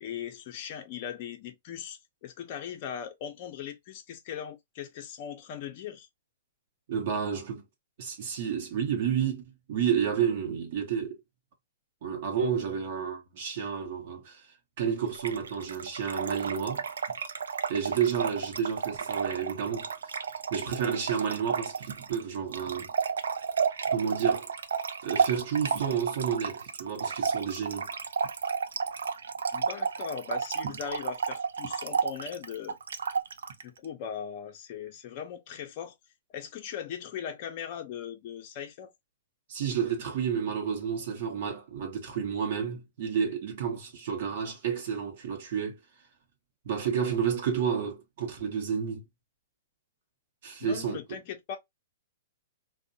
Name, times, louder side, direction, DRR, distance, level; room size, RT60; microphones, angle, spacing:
voice 1, 0.0-6.1 29.5-32.8 33.6-35.9 36.3-38.9 50.6-51.6, left 8 dB, 45° left, 0.5 m, -39 dB
voice 2, 6.9-7.6 8.0-9.4 9.7-11.2 12.0-14.5 14.8-16.8 17.7-19.9 20.5-22.9 23.9-24.5 25.0-27.9 30.6-30.7 39.5-45.8 46.7-49.0 50.4-51.0, right 7 dB, 60° right, 0.7 m, -30 dB
Trickle dribble / Fill (with liquid), 15.1-33.6, right 6 dB, 85° right, 0.3 m, -32 dB
2.6 x 2.1 x 2.5 m
hypercardioid pair, 140°, 0 cm